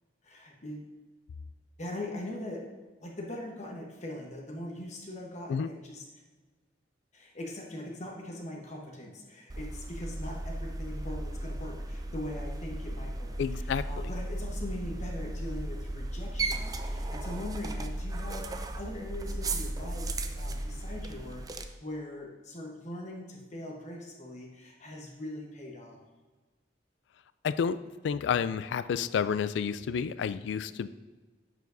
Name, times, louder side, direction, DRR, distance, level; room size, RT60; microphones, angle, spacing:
voice 1, 0.2-0.9 1.8-2.7 3.0-6.0 7.1-26.0, left 1 dB, 40° left, 0 dB, 1.1 m, -41 dB
sound 1, 9.5-21.6, right 2 dB, 20° right, 0.4 m, -35 dB
voice 2, 13.4-13.8 27.4-27.8 28.0-30.9, left 7 dB, 75° left, 14 dB, 0.3 m, -30 dB
10.5 x 4.9 x 2.7 m, 1.3 s
head